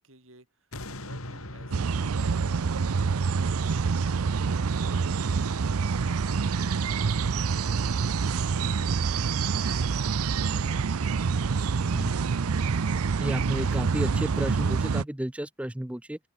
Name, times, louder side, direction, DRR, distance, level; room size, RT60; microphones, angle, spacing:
voice 1, 0.0-11.1 11.4-12.4, right 2 dB, 60° right, 7.2 m, -56 dB
sound 1, 0.7-5.8 6.3-6.4, left 1 dB, 75° left, 6.3 m, -44 dB
sound 2, 1.7-15.0, right 5 dB, 80° right, 0.6 m, -26 dB
voice 2, 13.2-16.2, right 1 dB, 5° right, 0.4 m, -32 dB
open air
head